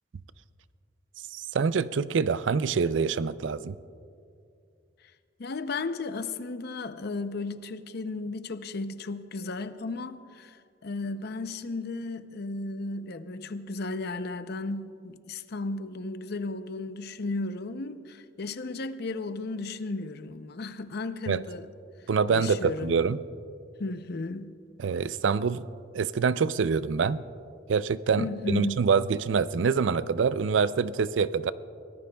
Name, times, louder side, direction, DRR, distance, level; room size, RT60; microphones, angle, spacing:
voice 1, 1.3-3.8 21.3-21.4 22.1-23.2 24.8-25.6 25.9-27.2 27.7-31.5, right 5 dB, 80° right, 0.4 m, -25 dB
voice 2, 5.4-10.6 10.8-21.7 22.3-23.0 23.8-24.6 28.2-28.9, left 3 dB, 60° left, 0.6 m, -34 dB
24.0 x 18.5 x 2.3 m
head